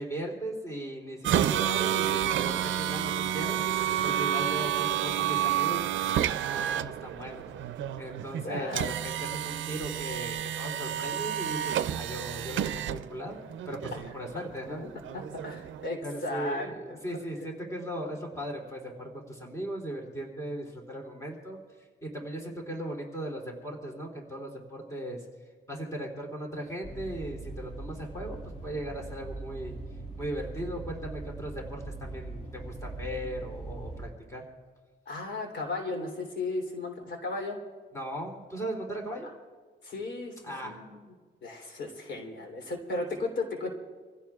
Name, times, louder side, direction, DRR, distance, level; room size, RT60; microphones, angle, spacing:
voice 1, 0.0-6.1 6.4-7.4 8.0-13.4 13.7-14.8 16.0-21.6 22.0-25.2 25.7-29.8 30.2-34.4 37.9-39.3 40.4-40.8, right 1 dB, 15° left, 0 dB, 3.1 m, -38 dB
sound 1, 1.2-15.9, right 10 dB, 90° right, 0.5 m, -30 dB
voice 2, 8.4-8.9 14.7-14.9 15.1-17.0 17.4-17.5 35.0-37.6 39.2-39.3 39.8-40.3 40.6-41.0 41.4-43.7, left 2 dB, 65° left, 1 dB, 3.2 m, -35 dB
sound 2, 26.8-34.1, right 2 dB, 35° left, 4.9 m, -41 dB
27.5 x 16.0 x 2.4 m, 1.5 s
cardioid pair, 125°, 19 cm